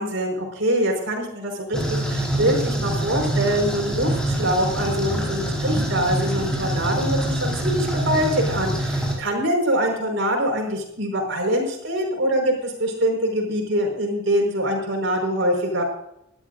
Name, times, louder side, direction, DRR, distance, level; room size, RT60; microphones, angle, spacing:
voice 1, 0.0-15.8, equal, 70° right, 1 dB, 5.0 m, -24 dB
sound 1, 1.7-9.1, right 1 dB, 5° left, 4.7 m, -25 dB
22.0 x 13.0 x 2.6 m, 0.78 s
head